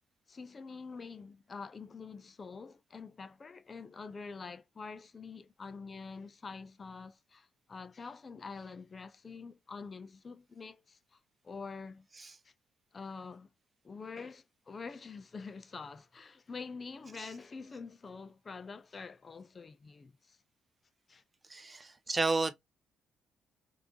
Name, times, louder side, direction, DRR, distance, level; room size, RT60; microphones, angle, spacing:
voice 1, 0.3-12.1 12.4-12.5 12.9-13.5 13.8-20.4 21.1-21.2, left 4 dB, 35° left, 0.5 m, -46 dB
voice 2, 21.5-22.5, right 3 dB, 25° right, 0.7 m, -31 dB
3.5 x 3.1 x 3.7 m
cardioid pair, 90°, 0 cm